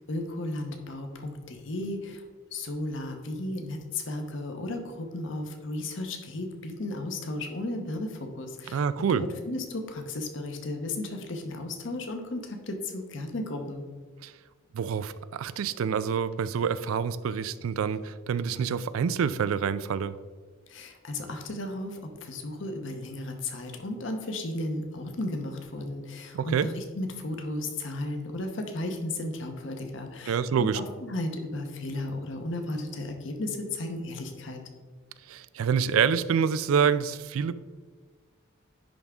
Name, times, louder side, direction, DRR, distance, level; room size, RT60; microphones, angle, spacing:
voice 1, 0.0-2.2 2.5-13.8 20.7-34.6, left 2 dB, 65° left, 4 dB, 0.9 m, -34 dB
voice 2, 8.7-9.2 14.2-14.3 14.7-20.1 26.3-26.7 30.3-30.8 35.3-37.5, right 7 dB, 90° right, 15 dB, 0.4 m, -27 dB
10.0 x 3.5 x 3.7 m, 1.4 s
head